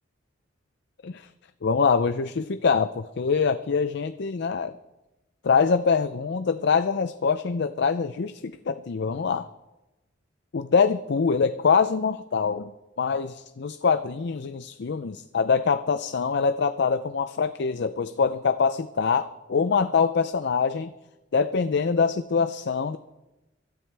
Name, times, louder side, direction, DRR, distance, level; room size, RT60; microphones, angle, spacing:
voice 1, 1.6-4.7 5.4-9.5 10.5-12.7 13.0-20.9 21.3-23.0, left 5 dB, 60° left, 11 dB, 0.5 m, -24 dB
24.5 x 12.5 x 3.4 m, 1.0 s
head